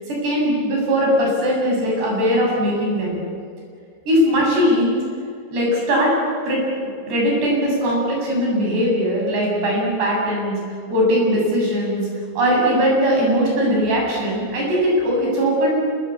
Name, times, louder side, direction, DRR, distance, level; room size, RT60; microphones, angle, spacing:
voice 1, 0.0-3.2 4.1-5.0 5.5-6.2 6.5-10.6 10.9-12.1 12.4-15.8, equal, 70° right, -2 dB, 9.8 m, -20 dB
27.0 x 23.0 x 8.5 m, 2.4 s
omnidirectional pair, 5.0 m